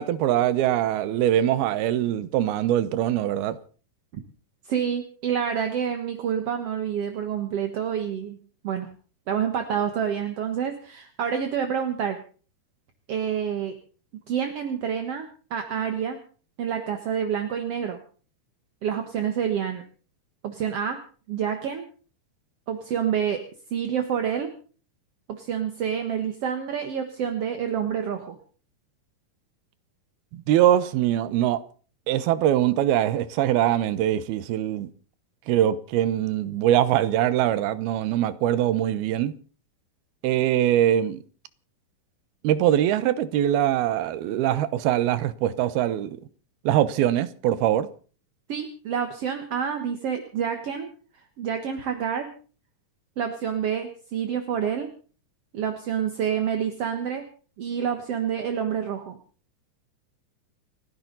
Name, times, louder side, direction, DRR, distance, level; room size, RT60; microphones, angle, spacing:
voice 1, 0.0-3.6 30.3-31.6 32.1-34.9 35.5-39.3 40.2-41.2 42.4-46.2 46.7-47.9, right 12 dB, 85° right, 2.9 m, -22 dB
voice 2, 4.6-8.4 8.6-8.9 9.3-12.2 13.1-13.7 14.3-16.2 16.6-18.0 18.8-19.8 20.4-21.0 21.3-21.9 22.7-23.4 23.7-24.5 25.3-28.4 48.5-50.9 51.4-52.3 53.2-54.9 55.5-57.3 57.6-59.2, right 8 dB, 55° right, 1.8 m, -28 dB
29.5 x 11.0 x 4.0 m
omnidirectional pair, 4.3 m